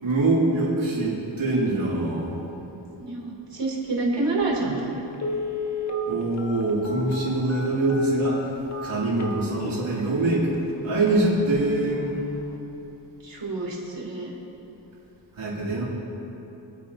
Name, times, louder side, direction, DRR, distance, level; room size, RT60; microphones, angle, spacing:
voice 1, 0.0-2.4 6.1-8.5 8.8-10.5 10.8-12.1 15.3-15.8, right 2 dB, 80° right, -8 dB, 3.1 m, -24 dB
voice 2, 3.0-4.8 13.2-14.3, right 3 dB, 65° right, -3 dB, 3.1 m, -28 dB
Telephone, 4.4-4.5 5.1-10.0 10.5-10.6 11.0-11.2 11.5-11.8 12.2-12.3, left 1 dB, 35° left, 1.5 m, -33 dB
24.5 x 8.8 x 2.9 m, 3.0 s
wide cardioid pair, 70°, 46 cm